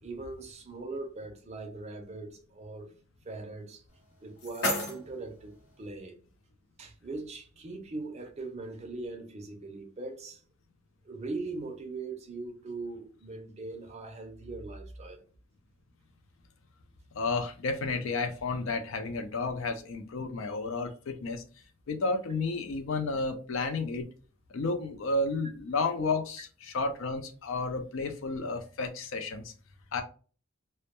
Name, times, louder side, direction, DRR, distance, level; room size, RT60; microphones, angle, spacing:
voice 1, 0.0-2.9 3.3-3.8 4.2-6.2 6.8-10.4 11.0-15.2, right 3 dB, 30° right, 0.4 m, -40 dB
sound 1, 3.9-5.9, left 1 dB, 80° left, 0.9 m, -35 dB
voice 2, 17.1-21.4 21.9-24.1 24.5-29.5 29.9-30.0, left 3 dB, 65° left, 0.4 m, -32 dB
2.1 x 2.1 x 2.8 m
head